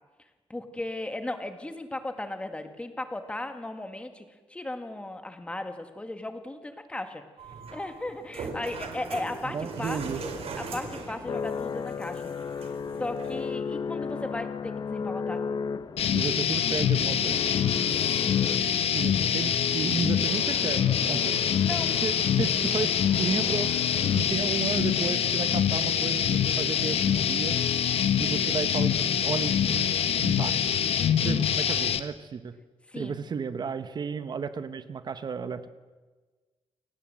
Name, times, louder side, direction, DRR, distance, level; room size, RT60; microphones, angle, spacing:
voice 1, 0.5-7.2 7.7-12.2 12.6-12.7 13.0-15.4 18.2-18.4 21.2-22.0 32.9-33.2, left 2 dB, 10° left, 7 dB, 1.9 m, -36 dB
sound 1, 7.4-13.4, right 4 dB, 75° right, 4.2 m, -40 dB
sound 2, 8.5-24.7, left 5 dB, 40° left, 0.7 m, -37 dB
voice 2, 9.4-10.2 16.1-17.4 18.9-21.4 22.0-23.8 24.1-27.6 28.2-29.9 30.2-30.6 30.8-32.6 32.9-35.7, right 6 dB, 45° right, 12 dB, 1.1 m, -33 dB
sound 3, 16.0-32.0, left 8 dB, 75° left, 1.3 m, -25 dB
28.5 x 18.0 x 7.6 m, 1.3 s
wide cardioid pair, 175°, 10 cm